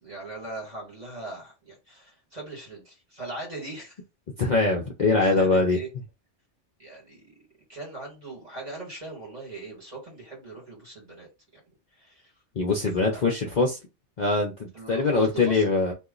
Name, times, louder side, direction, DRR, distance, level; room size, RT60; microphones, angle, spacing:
voice 1, 0.0-4.0 5.2-5.9 6.8-7.4 7.7-11.3 12.0-12.3 13.1-13.3 14.7-15.7, right 3 dB, 35° right, 2.0 m, -40 dB
voice 2, 4.4-5.8 12.6-13.8 14.2-15.9, left 3 dB, 50° left, 0.6 m, -23 dB
2.8 x 2.4 x 3.8 m
omnidirectional pair, 1.2 m